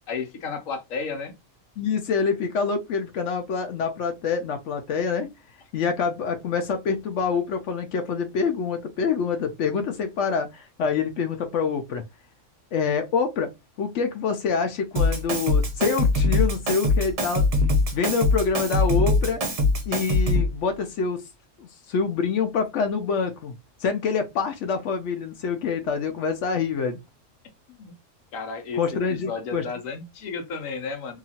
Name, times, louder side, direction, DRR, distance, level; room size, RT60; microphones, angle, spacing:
voice 1, 0.0-1.3 27.7-27.9 28.3-28.8 29.1-31.2, left 5 dB, 90° left, 1.1 m, -33 dB
voice 2, 1.8-5.3 5.7-12.0 12.7-13.5 13.8-17.4 17.9-19.6 19.9-21.2 21.6-23.5 23.8-27.0 28.8-29.6, left 5 dB, 70° left, 0.9 m, -26 dB
Drum kit, 15.0-20.6, left 2 dB, 45° right, 0.4 m, -22 dB
2.8 x 2.4 x 2.7 m
omnidirectional pair, 1.3 m